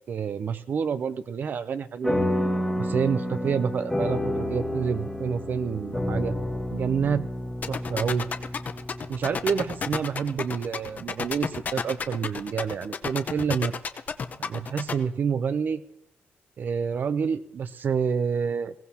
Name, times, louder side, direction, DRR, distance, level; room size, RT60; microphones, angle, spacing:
voice 1, 0.1-2.2 2.7-6.4 6.7-7.3 7.7-8.3 9.1-13.7 14.4-15.8 16.6-18.7, right 6 dB, 50° right, 13 dB, 0.4 m, -28 dB
sound 1, 2.0-10.8, left 1 dB, 5° left, 1.3 m, -30 dB
sound 2, 7.6-14.9, left 6 dB, 40° left, 0.7 m, -30 dB
21.0 x 17.0 x 2.8 m, 0.86 s
wide cardioid pair, 155°, 4 cm